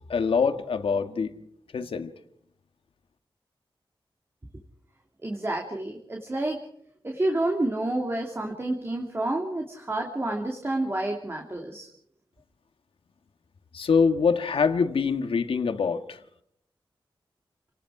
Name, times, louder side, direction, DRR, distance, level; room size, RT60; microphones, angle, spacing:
voice 1, 0.1-1.3 1.7-2.1 13.7-16.2, left 5 dB, 85° left, 1.7 m, -24 dB
voice 2, 5.2-6.6 7.0-11.9, right 1 dB, 25° right, 2.6 m, -29 dB
29.0 x 19.0 x 4.9 m
wide cardioid pair, 115°, 9 cm